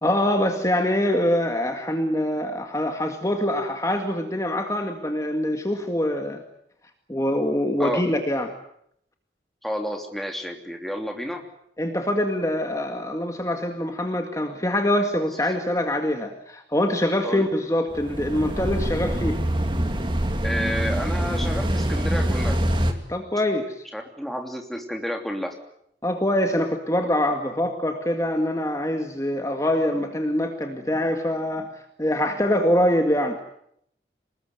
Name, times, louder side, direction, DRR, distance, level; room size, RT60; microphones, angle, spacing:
voice 1, 0.0-6.4 7.1-8.5 11.8-19.4 23.1-23.8 26.0-31.7 32.0-33.4, left 1 dB, 20° left, 5 dB, 1.9 m, -24 dB
voice 2, 9.6-11.4 17.2-17.5 20.4-22.6 23.9-25.6, equal, ahead, 3 dB, 3.1 m, -30 dB
sound 1, 17.9-22.9, right 1 dB, 25° right, 2.4 m, -24 dB
25.5 x 20.5 x 9.3 m, 0.73 s
head